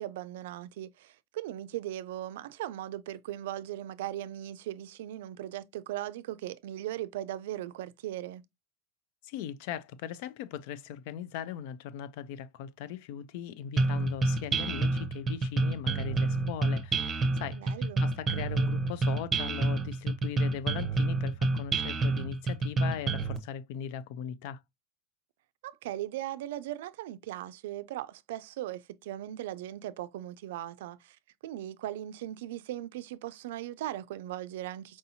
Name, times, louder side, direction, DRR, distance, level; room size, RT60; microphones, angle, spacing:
voice 1, 0.0-8.4 17.5-18.0 25.6-31.2 31.4-35.0, right 13 dB, 85° right, 0.4 m, -38 dB
voice 2, 9.2-17.7 18.0-24.6, left 9 dB, 65° left, 0.4 m, -39 dB
sound 1, 13.8-23.4, right 3 dB, 20° right, 0.7 m, -28 dB
4.6 x 2.7 x 2.7 m
supercardioid pair, 140°, 0 cm